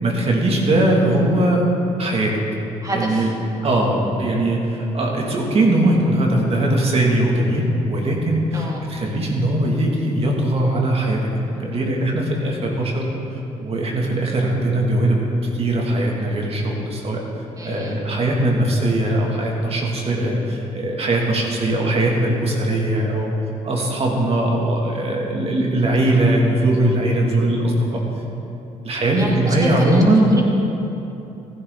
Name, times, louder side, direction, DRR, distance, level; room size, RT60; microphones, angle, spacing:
voice 1, 0.0-1.6 2.0-2.3 2.9-3.3 3.6-11.2 11.5-13.1 13.6-17.2 17.6-23.3 23.6-28.0 28.8-30.3, right 1 dB, 45° right, -1 dB, 2.6 m, -20 dB
voice 2, 2.8-3.3 3.6-3.8 8.5-8.8 17.6-18.0 26.1-26.2 29.1-30.4, right 1 dB, 25° right, -4 dB, 3.2 m, -29 dB
15.0 x 11.0 x 4.0 m, 2.9 s
supercardioid pair, 70°, 14 cm